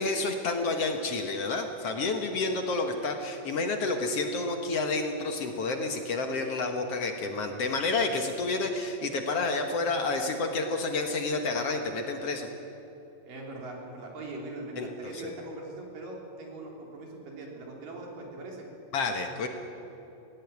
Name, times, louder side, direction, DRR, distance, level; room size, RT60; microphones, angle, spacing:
voice 1, 0.0-12.5 14.8-15.3 18.9-19.5, left 3 dB, 55° left, 5 dB, 2.0 m, -30 dB
voice 2, 13.2-18.7, right 2 dB, 85° right, 0 dB, 5.1 m, -41 dB
17.5 x 17.0 x 9.4 m, 2.8 s
omnidirectional pair, 3.8 m